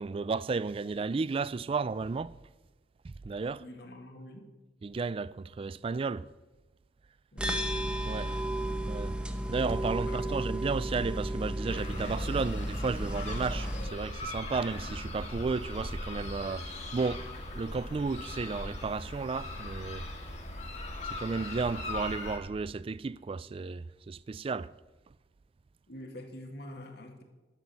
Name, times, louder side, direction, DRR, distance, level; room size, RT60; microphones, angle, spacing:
voice 1, 0.0-2.3 3.0-3.7 4.8-6.3 8.1-8.4 8.9-9.2 9.5-17.2 17.5-20.1 21.0-24.7, right 4 dB, 30° right, 0.3 m, -33 dB
voice 2, 3.5-4.5 7.3-7.7 10.0-10.4 25.9-27.2, left 1 dB, 65° left, 2.1 m, -46 dB
sound 1, 7.4-13.9, right 1 dB, 5° right, 0.9 m, -33 dB
sound 2, 11.7-22.4, left 1 dB, 40° left, 1.9 m, -39 dB
11.5 x 8.0 x 7.0 m
head